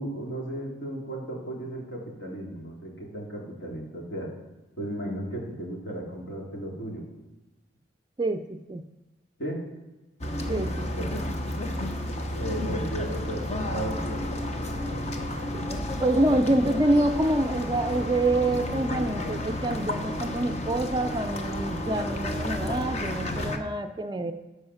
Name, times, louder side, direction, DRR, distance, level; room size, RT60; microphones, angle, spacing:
voice 1, 0.0-4.3 4.8-7.0 9.4-9.6 12.3-14.4, right 1 dB, 65° left, -2 dB, 2.7 m, -35 dB
sound 1, 10.2-23.6, left 1 dB, 35° left, 0.9 m, -31 dB
voice 2, 10.5-11.1 15.5-15.6 16.0-24.3, right 1 dB, 20° right, 9 dB, 0.4 m, -26 dB
13.5 x 4.8 x 5.7 m, 1.1 s
head